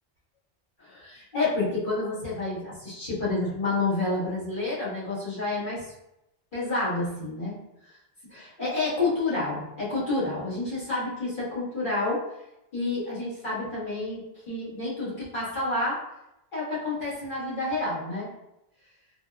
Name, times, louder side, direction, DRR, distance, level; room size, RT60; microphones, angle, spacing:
voice 1, 0.8-5.8 6.5-7.6 8.3-12.2 12.7-16.0 16.5-18.3, left 2 dB, 50° left, -10 dB, 1.4 m, -29 dB
4.0 x 2.2 x 2.2 m, 0.87 s
omnidirectional pair, 1.1 m